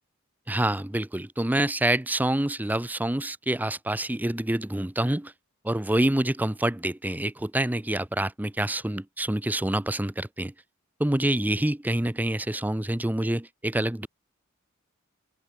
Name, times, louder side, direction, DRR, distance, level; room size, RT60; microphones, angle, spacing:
voice 1, 0.5-5.3 5.6-10.5 11.0-14.1, right 1 dB, 10° right, 0.6 m, -27 dB
open air
head